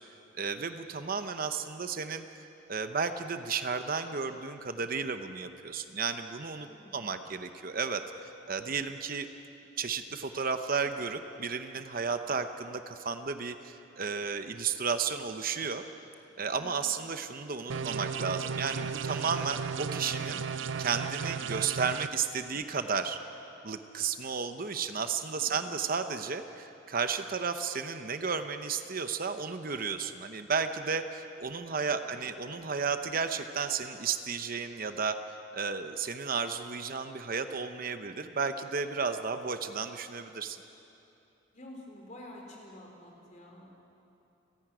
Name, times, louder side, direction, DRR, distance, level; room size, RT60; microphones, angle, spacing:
voice 1, 0.3-2.3 2.7-6.7 6.9-8.0 8.5-9.3 9.8-15.8 16.4-20.4 20.8-23.2 23.6-35.2 35.5-40.6, right 5 dB, 50° right, 8 dB, 0.8 m, -33 dB
voice 2, 6.6-7.2 16.5-16.8 25.3-25.7 32.0-32.2 32.5-32.6 41.5-43.8, left 1 dB, 40° left, 0 dB, 4.2 m, -50 dB
sound 1, 17.7-22.1, right 6 dB, 80° right, 0.6 m, -35 dB
29.5 x 11.0 x 9.0 m, 2.9 s
head